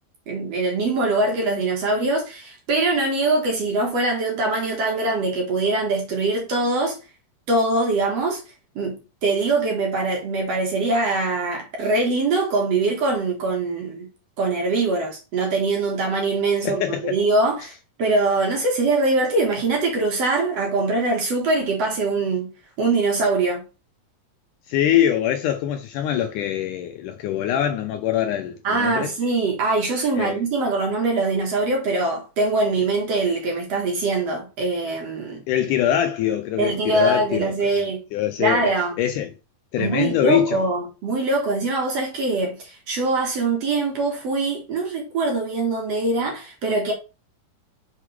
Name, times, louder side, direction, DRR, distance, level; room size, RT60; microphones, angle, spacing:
voice 1, 0.3-7.0 7.5-8.4 8.8-14.1 14.4-17.7 18.0-22.5 22.8-23.6 28.6-35.4 36.6-38.0 38.4-39.0 39.8-46.9, right 3 dB, 50° right, 2.5 m, -23 dB
voice 2, 16.6-17.2 24.7-29.1 30.2-30.4 32.8-32.9 35.5-37.5 38.1-38.7 39.0-39.3 39.7-40.7, left 11 dB, 80° left, 1.9 m, -23 dB
6.2 x 5.6 x 3.5 m
omnidirectional pair, 4.1 m